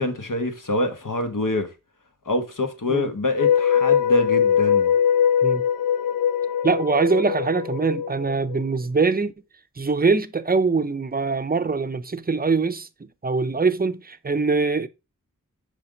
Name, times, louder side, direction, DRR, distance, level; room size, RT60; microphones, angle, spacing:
voice 1, 0.0-1.7 2.2-5.0, left 1 dB, 70° left, 1.3 m, -26 dB
sound 1, 3.4-8.6, left 8 dB, 90° left, 0.5 m, -21 dB
voice 2, 6.6-9.3 9.8-12.9 13.2-14.9, right 4 dB, 30° right, 0.6 m, -23 dB
5.7 x 5.1 x 3.8 m
wide cardioid pair, 65°, 33 cm